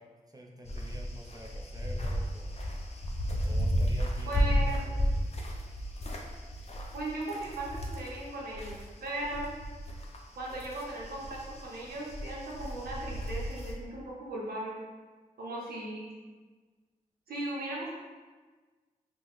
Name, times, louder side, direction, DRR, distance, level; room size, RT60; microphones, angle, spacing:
voice 1, 0.0-2.6 3.4-5.2, right 1 dB, 25° right, 0 dB, 0.5 m, -49 dB
sound 1, 0.6-8.8 9.2-13.7, equal, 45° left, 0.5 m, -33 dB
voice 2, 4.3-4.8 6.9-9.5 10.4-14.8 15.4-16.3 17.3-17.9, right 2 dB, 85° right, -5 dB, 0.6 m, -37 dB
3.6 x 2.0 x 3.1 m, 1.4 s
cardioid pair, 50°, 15 cm